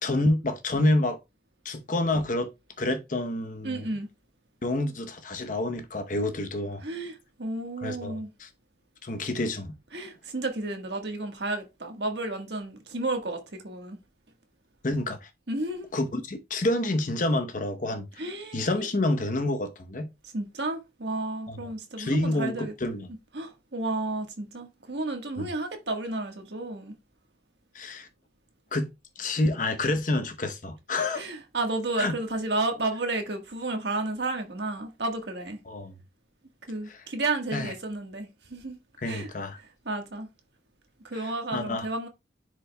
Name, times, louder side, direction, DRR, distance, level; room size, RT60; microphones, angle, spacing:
voice 1, 0.0-1.2 1.6-2.5 2.8-3.9 4.6-6.8 7.8-8.5 9.0-9.7 14.8-15.3 15.9-18.1 18.5-20.1 21.5-21.6 22.0-23.1 25.4-25.5 27.7-28.1 28.7-28.9 29.2-31.2 32.0-32.1 35.7-35.9 36.9-37.0 37.5-37.7 39.0-39.6 41.5-42.1, left 2 dB, 45° left, 0.8 m, -28 dB
voice 2, 3.6-4.1 6.8-8.3 9.9-14.0 15.5-15.9 18.2-18.9 20.3-22.7 23.3-26.9 31.1-35.6 36.7-38.8 39.0-39.3 39.6-40.3 41.0-42.1, right 2 dB, 65° right, 1.4 m, -32 dB
10.0 x 5.0 x 2.2 m
head